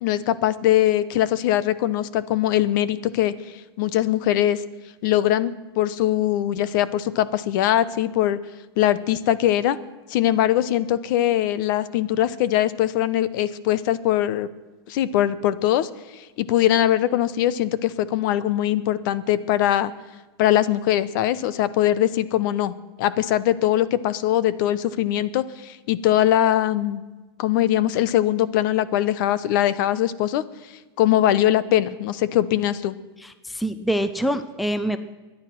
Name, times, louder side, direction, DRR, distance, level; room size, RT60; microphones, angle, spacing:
voice 1, 0.0-3.3 3.8-4.6 5.0-8.4 8.8-9.8 10.1-14.5 14.9-15.9 16.4-19.9 20.4-27.0 27.4-30.4 31.0-33.0, left 12 dB, 50° left, 16 dB, 0.8 m, -21 dB
voice 2, 33.2-35.0, right 1 dB, ahead, 11 dB, 0.4 m, -25 dB
23.0 x 9.9 x 6.0 m, 1.2 s
supercardioid pair, 160°, 14 cm